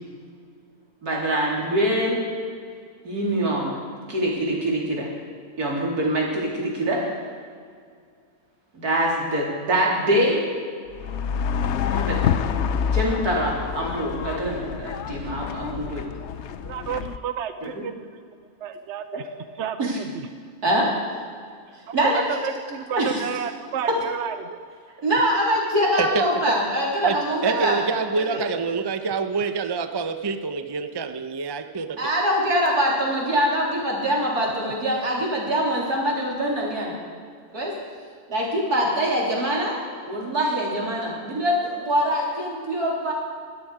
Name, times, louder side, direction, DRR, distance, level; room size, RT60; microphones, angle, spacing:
voice 1, 1.0-2.2 3.0-3.8 4.1-5.1 5.6-7.0 8.7-10.4 11.9-12.2 12.9-16.0 19.8-20.0 20.6-20.9 21.9-22.4 22.9-23.2 25.0-27.8 28.2-28.5 32.0-36.9 37.5-37.7 38.3-39.8 40.0-43.1, equal, 80° right, -3 dB, 4.1 m, -24 dB
sound 1, 10.9-17.2, left 7 dB, 60° left, 0.8 m, -27 dB
voice 2, 16.6-18.0 18.6-19.2 19.6-20.3 21.9-24.6 27.5-27.9 34.6-34.7, right 7 dB, 55° right, 10 dB, 0.9 m, -31 dB
voice 3, 26.0-26.5 27.0-27.2 27.4-32.1, right 5 dB, 25° right, 8 dB, 0.5 m, -26 dB
21.5 x 13.0 x 5.0 m, 2.2 s
omnidirectional pair, 1.6 m